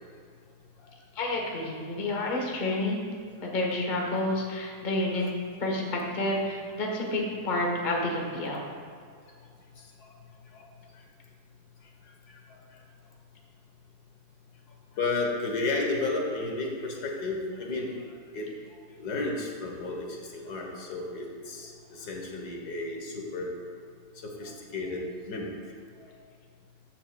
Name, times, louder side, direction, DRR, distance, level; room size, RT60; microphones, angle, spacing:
voice 1, 1.1-3.0 3.4-5.2 5.6-8.6, left 2 dB, 35° left, -1 dB, 1.1 m, -29 dB
voice 2, 15.0-17.9 18.3-18.5 19.0-23.5 24.2-25.5 26.0-26.1, left 3 dB, 75° left, 0 dB, 1.6 m, -32 dB
13.5 x 6.9 x 2.2 m, 2.2 s
omnidirectional pair, 1.7 m